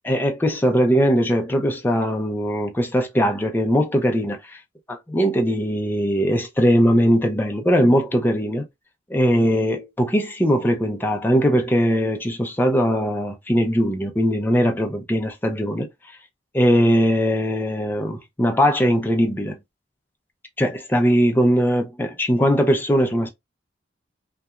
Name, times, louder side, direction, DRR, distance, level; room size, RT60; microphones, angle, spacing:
voice 1, 0.0-4.6 4.9-8.6 9.1-15.9 16.5-19.6 20.6-23.3, equal, 10° left, 0.4 m, -20 dB
2.8 x 2.2 x 2.3 m
head